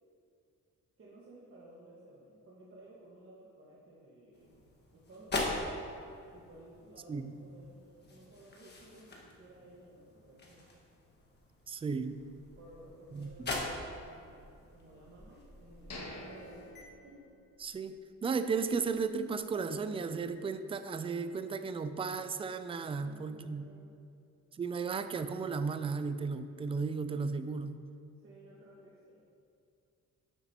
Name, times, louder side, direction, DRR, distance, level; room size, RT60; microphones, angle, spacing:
voice 1, 1.0-4.6 4.9-5.9 6.3-10.7 12.6-16.7 17.0-17.2 23.0-23.9 28.2-29.2, right 1 dB, 40° right, -6 dB, 1.6 m, -56 dB
sound 1, 4.3-16.8, left 2 dB, 35° left, 1.5 m, -43 dB
voice 2, 11.7-12.1 13.1-13.3 17.6-18.0 18.2-23.7 24.6-27.8, right 5 dB, 20° right, 10 dB, 0.3 m, -34 dB
sound 2, 15.9-17.8 18.2-18.3 18.8-19.0, left 1 dB, 55° left, 1.8 m, -48 dB
11.0 x 8.1 x 2.9 m, 2.5 s
cardioid pair, 140°, 31 cm